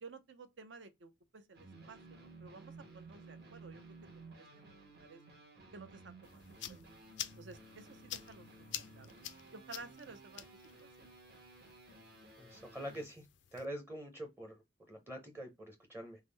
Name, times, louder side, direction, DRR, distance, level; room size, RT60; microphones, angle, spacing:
voice 1, 0.0-3.8 4.1-4.5 5.0-5.2 5.7-6.8 7.4-8.5 8.7-9.1 9.5-10.4 10.8-11.1, right 4 dB, 75° right, 0.6 m, -53 dB
sound 1, 1.5-13.1, right 2 dB, 55° right, 1.0 m, -56 dB
sound 2, 6.2-13.6, left 12 dB, 70° left, 0.3 m, -49 dB
voice 2, 12.4-13.3 13.5-16.2, equal, 10° right, 0.6 m, -45 dB
3.5 x 2.0 x 3.2 m
head